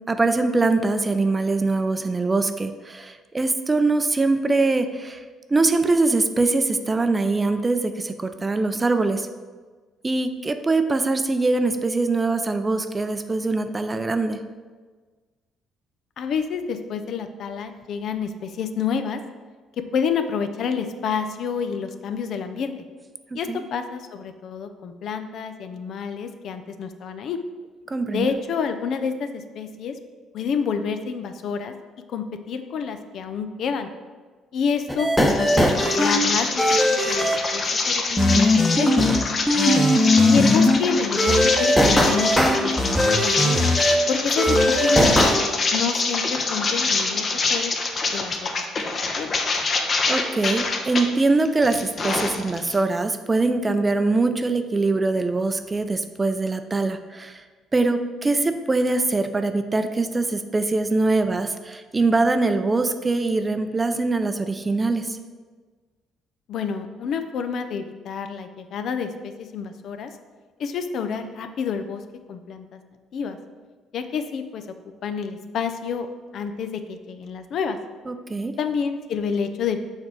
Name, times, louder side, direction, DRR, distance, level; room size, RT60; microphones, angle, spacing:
voice 1, 0.1-5.2 5.5-9.3 10.0-14.4 23.3-23.6 27.9-28.3 40.3-40.4 50.1-57.4 57.7-65.2 78.1-78.5, right 3 dB, 25° right, 9 dB, 0.5 m, -23 dB
voice 2, 16.2-19.2 19.8-22.7 23.3-27.4 28.1-30.0 30.3-31.7 32.1-33.9 34.5-37.3 37.5-39.1 40.2-42.3 42.6-43.7 44.1-45.3 45.7-47.7 48.1-48.4 49.0-49.4 66.5-70.1 70.6-72.0 72.3-72.8 73.1-73.4 73.9-74.7 75.0-76.1 76.3-77.8 78.6-79.8, left 6 dB, 65° left, 8 dB, 0.5 m, -28 dB
sound 1, 34.9-36.2 36.6-37.4 38.2-39.2 39.5-40.8 41.2-44.0 44.4-45.4, left 1 dB, 5° left, 0.9 m, -19 dB
sound 2, 35.3-51.0 51.5-52.8, left 3 dB, 40° left, 0.9 m, -25 dB
6.4 x 3.5 x 6.1 m, 1.4 s
supercardioid pair, 85°, 0 cm